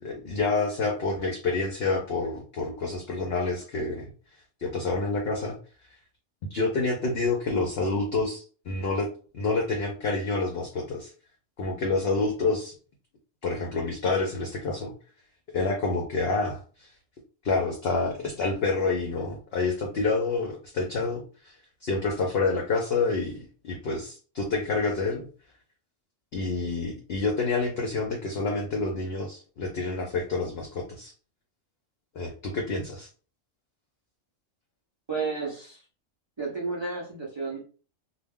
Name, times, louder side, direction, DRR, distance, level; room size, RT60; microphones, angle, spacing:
voice 1, 0.0-4.1 4.6-5.6 6.5-9.1 9.3-11.1 11.6-12.7 13.4-14.9 15.5-16.9 17.4-21.6 21.8-25.3 26.3-31.1 32.1-33.1, left 3 dB, 60° left, 2 dB, 0.7 m, -28 dB
voice 2, 35.1-35.8 36.4-37.6, right 4 dB, 45° right, -4 dB, 0.3 m, -32 dB
2.2 x 2.1 x 3.5 m, 0.38 s
omnidirectional pair, 1.3 m